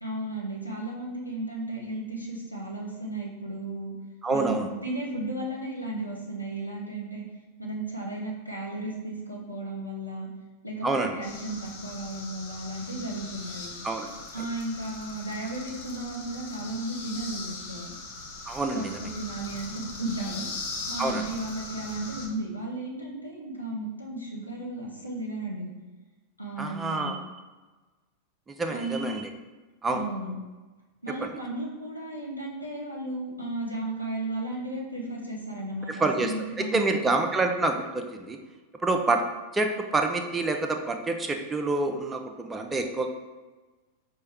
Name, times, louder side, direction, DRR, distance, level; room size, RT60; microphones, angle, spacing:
voice 1, 0.0-3.9 4.3-7.2 7.6-10.3 10.6-13.7 14.3-17.9 18.7-20.5 20.9-25.7 26.4-27.2 28.7-29.1 29.9-30.3 31.0-37.1, right 2 dB, 90° left, -3 dB, 0.8 m, -34 dB
voice 2, 4.2-4.7 10.8-11.1 13.8-14.1 18.5-19.1 21.0-21.3 26.6-27.2 28.5-29.3 29.8-30.0 31.2-31.3 35.9-38.4 38.8-39.2 39.5-43.1, right 3 dB, 15° right, 5 dB, 0.4 m, -27 dB
sound 1, 11.2-22.3, left 3 dB, 50° left, 0.7 m, -40 dB
5.1 x 2.2 x 3.4 m, 1.2 s
figure-of-eight pair, 90°, 0 cm